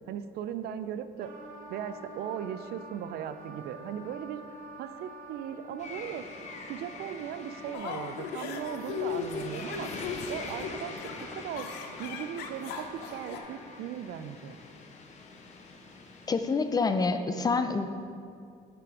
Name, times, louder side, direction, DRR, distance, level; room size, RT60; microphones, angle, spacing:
voice 1, 0.1-1.3 1.7-4.4 4.8-6.3 6.7-11.7 12.0-14.6, right 9 dB, 70° right, 11 dB, 0.4 m, -38 dB
Wind instrument woodwind instrument, 1.2-14.1, right 1 dB, 45° right, 1.0 m, -48 dB
sound 1, 5.8-17.1, left 3 dB, 45° left, 0.8 m, -45 dB
sound 2, 7.7-13.4, left 6 dB, 85° left, 0.6 m, -37 dB
voice 2, 16.3-17.9, left 4 dB, 25° left, 9 dB, 0.4 m, -27 dB
6.0 x 5.1 x 4.7 m, 2.3 s
cardioid pair, 110°, 17 cm